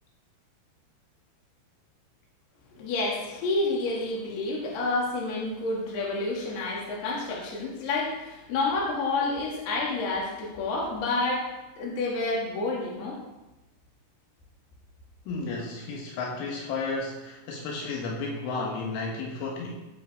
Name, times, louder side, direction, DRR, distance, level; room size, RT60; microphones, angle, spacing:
voice 1, 2.7-11.5 11.8-13.2 15.6-15.7, left 2 dB, 60° left, -4 dB, 4.4 m, -29 dB
voice 2, 15.3-19.9, left 3 dB, 80° left, 0 dB, 3.7 m, -33 dB
16.0 x 9.7 x 3.7 m, 1.0 s
omnidirectional pair, 5.5 m